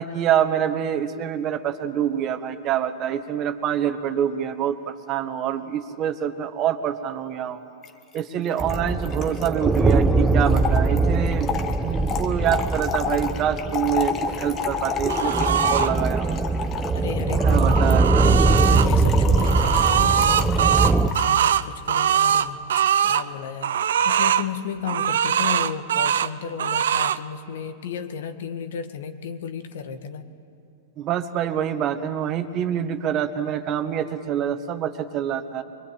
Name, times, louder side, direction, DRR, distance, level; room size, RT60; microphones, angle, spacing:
voice 1, 0.0-7.6 8.1-11.5 11.8-16.4 17.4-18.3 31.0-35.6, right 9 dB, 35° right, 8 dB, 1.6 m, -26 dB
Trickle dribble / Fill (with liquid), 7.8-7.9 8.2-8.3 8.4-21.5, left 7 dB, 30° left, 1.5 m, -31 dB
sound 1, 8.6-21.1, right 3 dB, 10° right, 0.9 m, -22 dB
sound 2, 15.1-15.9 17.3-18.9 19.4-23.2 23.6-24.5 24.9-26.3 26.6-27.2, right 9 dB, 75° right, 0.6 m, -22 dB
voice 2, 16.9-30.3, left 6 dB, 70° left, 8 dB, 1.7 m, -34 dB
22.5 x 22.5 x 8.9 m, 2.4 s
hypercardioid pair, 105°, 0 cm